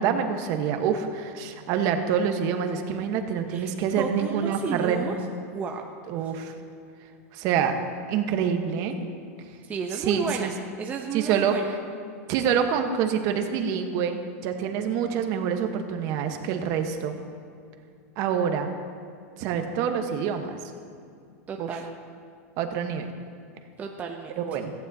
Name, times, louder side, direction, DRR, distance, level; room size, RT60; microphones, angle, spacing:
voice 1, 0.0-5.2 6.1-6.5 7.3-7.8 8.1-9.0 9.9-10.5 11.1-11.8 12.3-17.2 18.2-18.7 19.4-20.6 21.6-21.8 22.6-23.1 24.4-24.7, right 7 dB, 45° right, 6 dB, 1.2 m, -26 dB
voice 2, 4.0-5.2 5.5-5.8 9.7-10.5 10.8-11.7 21.5-21.9 23.8-24.3, right 5 dB, 20° right, 2 dB, 0.7 m, -32 dB
17.0 x 15.0 x 2.8 m, 2.4 s
supercardioid pair, 145°, 8 cm